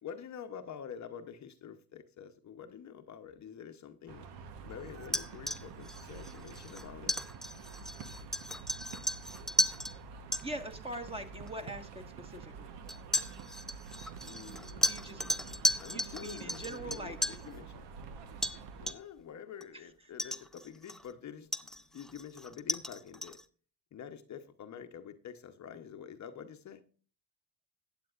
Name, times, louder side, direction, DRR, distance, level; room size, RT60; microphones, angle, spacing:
voice 1, 0.0-4.3 4.6-7.2 14.2-17.8 18.8-23.4 23.9-26.8, left 8 dB, 45° left, 0.9 m, -47 dB
sound 1, 4.1-18.9, right 5 dB, 80° right, 1.2 m, -48 dB
sound 2, 5.0-9.9 10.3-10.4 11.5-11.6 12.9-17.5 18.4-18.6 18.9-19.2 19.6-19.7 20.2-21.1 21.5-23.4, equal, ahead, 0.5 m, -35 dB
voice 2, 10.4-12.7 14.9-15.2 15.7-17.2, right 1 dB, 15° right, 1.5 m, -42 dB
15.0 x 8.9 x 2.5 m
cardioid pair, 95°, 41 cm